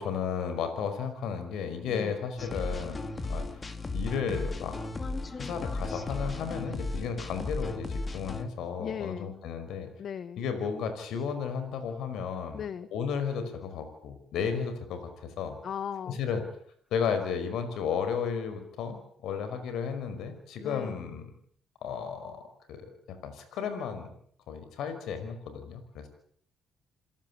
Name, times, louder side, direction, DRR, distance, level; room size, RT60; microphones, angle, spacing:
voice 1, 0.0-3.4 3.9-4.8 5.4-9.9 10.4-12.6 12.9-15.6 16.1-16.4 16.9-21.3 21.8-22.4 22.7-24.1 24.5-26.1, left 6 dB, 80° left, 9 dB, 5.1 m, -33 dB
voice 2, 1.9-2.2 8.8-9.3 10.0-10.4 12.5-12.9 15.6-16.2 20.6-21.0, left 8 dB, 60° left, 14 dB, 1.3 m, -37 dB
sound 1, 2.4-8.5, left 2 dB, 30° left, 2.9 m, -35 dB
28.5 x 17.5 x 8.7 m, 0.63 s
cardioid pair, 90°, 0 cm